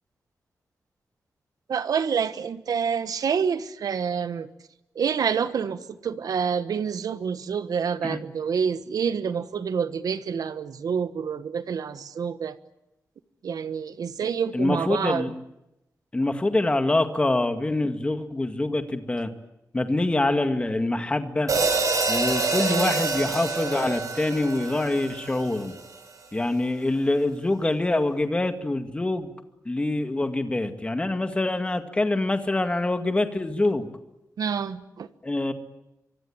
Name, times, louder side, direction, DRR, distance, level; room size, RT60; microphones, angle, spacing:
voice 1, 1.7-4.5 4.9-12.6 13.4-15.3 22.7-22.9 34.4-35.1, right 6 dB, 85° right, 1.3 m, -27 dB
voice 2, 14.5-15.3 16.1-19.3 19.7-21.5 22.1-25.7 26.3-29.3 29.7-33.9 35.2-35.5, left 2 dB, 20° left, 2.0 m, -25 dB
sound 1, 21.5-25.9, right 3 dB, 65° right, 6.7 m, -26 dB
25.5 x 23.5 x 8.8 m
wide cardioid pair, 160°, 6 cm